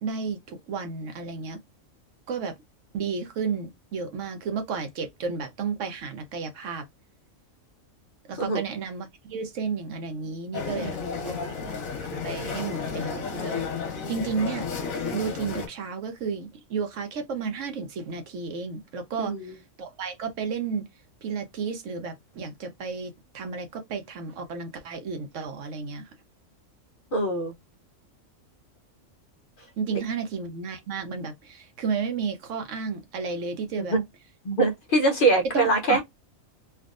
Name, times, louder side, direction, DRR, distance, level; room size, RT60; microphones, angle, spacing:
voice 1, 0.0-1.6 2.3-2.5 2.9-6.8 8.3-11.0 11.2-11.4 12.0-14.6 15.1-20.8 21.2-26.0 29.8-34.0 35.5-36.0, right 5 dB, 70° right, 1.0 m, -32 dB
sound 1, 10.5-15.7, left 5 dB, 80° left, 1.3 m, -32 dB
voice 2, 10.7-11.5 19.2-19.5 27.1-27.5 33.8-34.0 34.4-36.0, right 2 dB, 50° left, 0.7 m, -24 dB
3.4 x 2.4 x 2.4 m
omnidirectional pair, 1.4 m